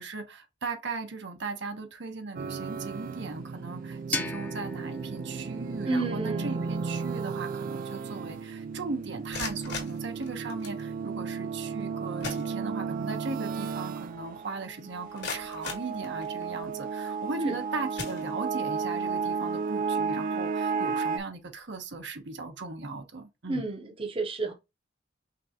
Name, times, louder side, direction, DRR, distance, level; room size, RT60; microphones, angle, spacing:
voice 1, 0.0-23.7, right 3 dB, 65° right, 1.0 m, -38 dB
sound 1, 2.3-21.2, right 5 dB, 45° right, 0.3 m, -34 dB
sound 2, 4.1-7.0, left 2 dB, 10° left, 0.7 m, -38 dB
voice 2, 5.8-6.8 17.4-17.5 23.5-24.5, right 2 dB, 30° right, 0.8 m, -31 dB
sound 3, 9.1-10.8 11.8-11.9 12.2-13.1 13.5-13.6 14.1-14.2 14.8-16.6 17.3-17.5 17.9-18.8, left 4 dB, 65° left, 1.7 m, -40 dB
5.2 x 3.3 x 2.8 m
head